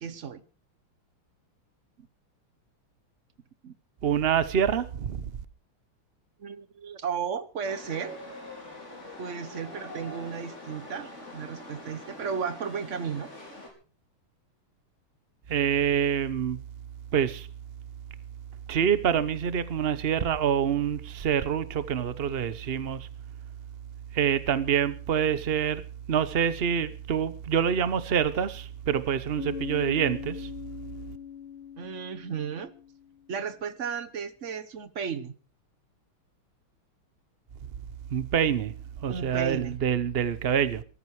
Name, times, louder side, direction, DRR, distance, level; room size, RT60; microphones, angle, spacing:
voice 1, 0.0-0.4 3.6-3.7 6.4-8.2 9.2-13.3 31.8-32.7 33.3-35.3 39.1-39.8, right 6 dB, 45° right, 1.0 m, -34 dB
voice 2, 4.0-5.3 15.5-16.6 17.1-17.5 18.7-23.1 24.1-25.8 26.1-30.5 38.1-38.7 39.0-40.8, right 8 dB, 85° right, 0.5 m, -26 dB
Chatter / Subway metro underground, 7.6-13.7, left 1 dB, 30° left, 5.1 m, -44 dB
Bass guitar, 29.4-33.2, left 8 dB, 70° left, 2.2 m, -40 dB
18.5 x 14.0 x 4.8 m
omnidirectional pair, 2.4 m